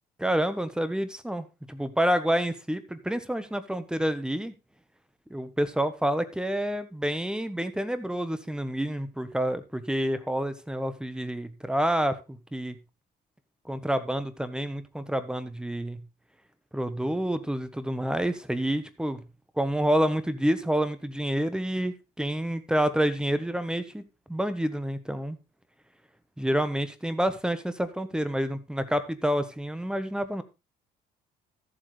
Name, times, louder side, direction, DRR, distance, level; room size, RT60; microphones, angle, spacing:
voice 1, 0.2-4.5 5.3-12.8 13.7-16.0 16.7-19.2 19.6-24.0 24.3-25.4 26.4-30.4, equal, 5° right, 1.1 m, -28 dB
13.5 x 7.7 x 3.2 m
cardioid pair, 110°, 17 cm